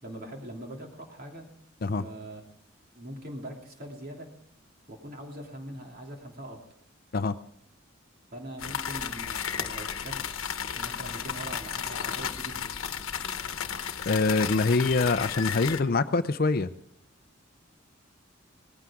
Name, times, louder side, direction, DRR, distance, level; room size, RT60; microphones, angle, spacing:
voice 1, 0.0-1.5 1.9-2.4 2.9-4.3 4.9-6.6 8.3-10.3 10.7-12.7 14.1-14.7, right 1 dB, 45° right, 1 dB, 2.9 m, -42 dB
sound 1, 8.6-15.8, left 8 dB, 80° left, 1.1 m, -33 dB
voice 2, 14.1-16.7, left 3 dB, 45° left, 13 dB, 0.5 m, -24 dB
19.0 x 15.0 x 3.7 m, 0.66 s
head